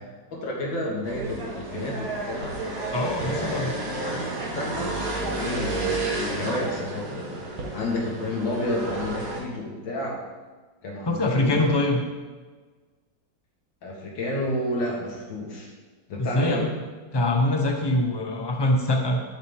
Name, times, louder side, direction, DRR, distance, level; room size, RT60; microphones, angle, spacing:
voice 1, 0.4-2.6 3.2-3.7 4.0-4.2 4.6-7.4 7.7-10.2 10.8-11.9 13.8-15.7 16.1-16.7, left 1 dB, 85° left, -2 dB, 2.6 m, -31 dB
sound 1, 1.0-9.4, right 2 dB, 50° right, 1.9 m, -31 dB
voice 2, 2.9-3.7 11.1-12.0 16.2-16.7 17.1-19.2, left 1 dB, 20° left, 1 dB, 0.8 m, -23 dB
11.0 x 7.3 x 3.6 m, 1.4 s
omnidirectional pair, 2.0 m